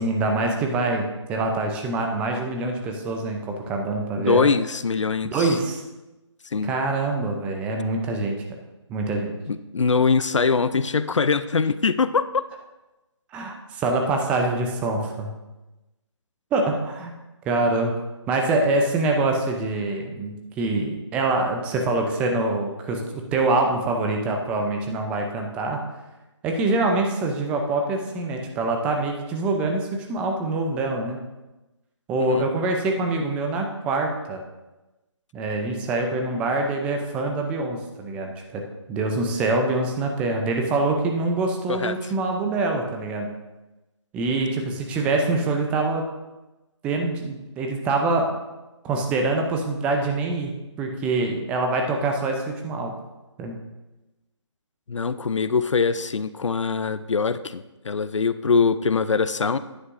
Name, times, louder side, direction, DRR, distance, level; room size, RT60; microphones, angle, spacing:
voice 1, 0.0-4.5 5.3-5.8 6.6-8.4 8.9-9.4 13.3-15.3 16.5-17.1 17.5-17.9 18.3-25.8 26.4-31.2 32.1-34.4 35.3-38.6 38.9-43.3 44.1-46.0 46.8-48.3 48.8-50.5 50.8-53.0 53.4-53.6, right 2 dB, 10° right, 2 dB, 0.6 m, -25 dB
voice 2, 4.2-5.6 6.4-6.7 9.5-12.4 32.2-32.5 41.7-42.0 54.9-59.6, left 5 dB, 75° left, 14 dB, 0.6 m, -23 dB
10.5 x 10.0 x 2.6 m, 1.1 s
figure-of-eight pair, 155°, 16 cm